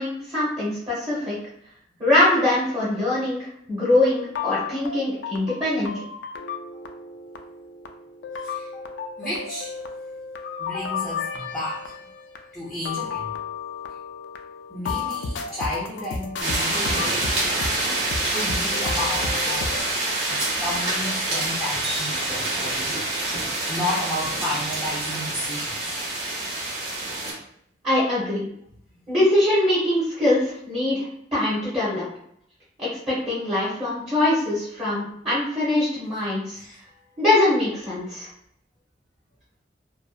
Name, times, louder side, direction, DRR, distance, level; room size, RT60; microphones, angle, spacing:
voice 1, 0.0-1.4 2.0-5.9 27.8-28.5 29.1-31.1 31.3-32.0 32.8-36.6 37.2-38.3, left 1 dB, 30° right, -9 dB, 0.8 m, -22 dB
sound 1, 4.1-19.8, left 5 dB, 80° left, 0.3 m, -33 dB
voice 2, 9.2-9.7 10.6-11.9 12.5-13.3 14.7-17.4 18.1-19.7 20.3-23.0 23.7-26.0 36.5-36.8, left 1 dB, ahead, -8 dB, 0.4 m, -32 dB
sound 2, 16.4-27.3, right 2 dB, 70° right, 0.9 m, -26 dB
2.6 x 2.1 x 2.3 m, 0.69 s
head